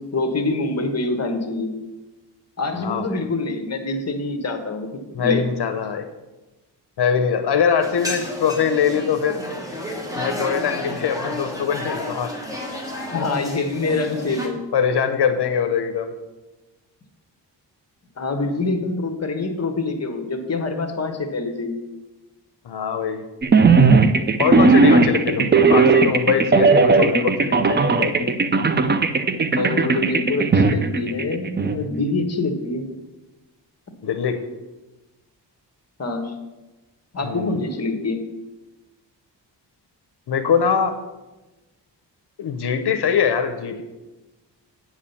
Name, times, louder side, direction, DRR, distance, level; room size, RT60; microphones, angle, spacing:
voice 1, 0.1-1.7 2.6-4.9 5.2-5.4 13.1-14.6 18.2-21.7 29.6-32.9 36.0-36.3 37.1-38.2, left 3 dB, 35° left, 6 dB, 1.3 m, -25 dB
voice 2, 2.8-3.2 5.1-6.0 7.0-9.4 10.1-12.3 14.7-16.1 22.6-23.2 24.4-28.4 34.0-34.4 37.2-37.5 40.3-41.0 42.4-43.8, left 7 dB, 65° left, 7 dB, 0.8 m, -22 dB
sound 1, 7.8-14.5, left 1 dB, 10° right, 1.5 m, -31 dB
sound 2, 23.4-31.8, right 4 dB, 25° right, 0.4 m, -16 dB
8.8 x 5.0 x 7.0 m, 1.1 s
wide cardioid pair, 135°, 43 cm